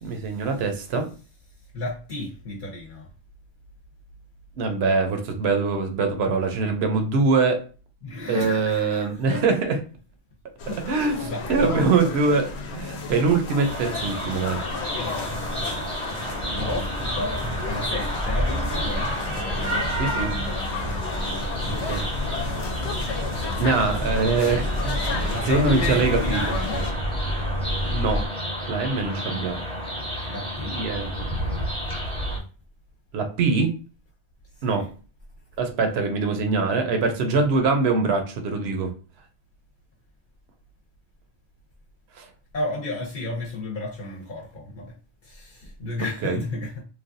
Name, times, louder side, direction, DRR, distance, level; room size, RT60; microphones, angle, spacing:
voice 1, 0.0-1.1 4.6-7.6 8.3-9.8 10.7-14.6 20.0-20.3 21.9-22.0 23.6-26.4 27.9-28.2 28.7-29.6 30.7-31.1 33.1-33.7 34.6-34.9 35.6-38.9 42.2-42.3 46.2-46.4, right 4 dB, 80° right, 0.9 m, -23 dB
voice 2, 1.7-3.1 8.0-9.4 10.7-10.8 11.2-11.7 15.0-20.6 21.6-22.1 25.3-26.8 29.1-29.5 30.3-30.8 34.7-34.9 42.5-44.9 45.2-46.8, left 2 dB, 55° left, 0.8 m, -33 dB
sound 1, 10.6-26.9, left 3 dB, 90° left, 0.9 m, -33 dB
sound 2, 13.6-32.4, equal, 5° left, 0.8 m, -31 dB
sound 3, 16.4-28.3, left 1 dB, 25° right, 0.5 m, -31 dB
3.2 x 2.3 x 2.5 m
omnidirectional pair, 1.1 m